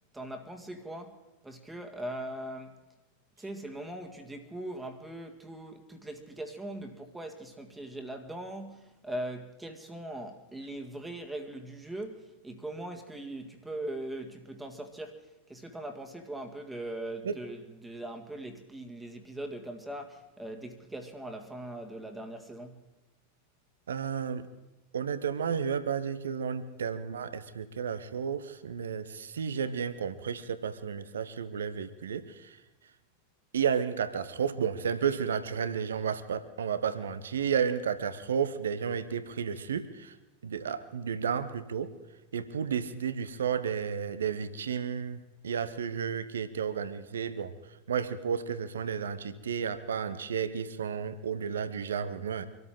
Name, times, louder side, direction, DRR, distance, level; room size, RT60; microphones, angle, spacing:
voice 1, 0.1-2.8 3.4-22.8, right 1 dB, 5° right, 1.9 m, -40 dB
voice 2, 23.9-24.5 24.9-32.6 33.5-40.1 40.4-41.9 42.3-47.5 47.9-52.4, right 7 dB, 65° right, 1.0 m, -32 dB
25.5 x 13.5 x 3.8 m
figure-of-eight pair, 90°, 0 cm